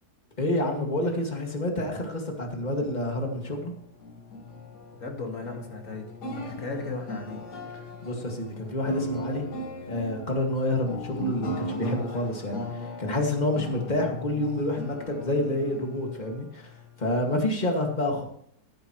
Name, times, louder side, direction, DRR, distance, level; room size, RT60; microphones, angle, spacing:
voice 1, 0.4-3.7 8.0-9.4 9.9-18.2, left 1 dB, 25° left, 2 dB, 2.3 m, -28 dB
sound 1, 2.6-17.3, equal, 85° left, 2.3 m, -38 dB
voice 2, 5.0-7.4, left 3 dB, 55° left, 2 dB, 2.6 m, -36 dB
14.5 x 10.5 x 3.2 m, 0.69 s
omnidirectional pair, 1.7 m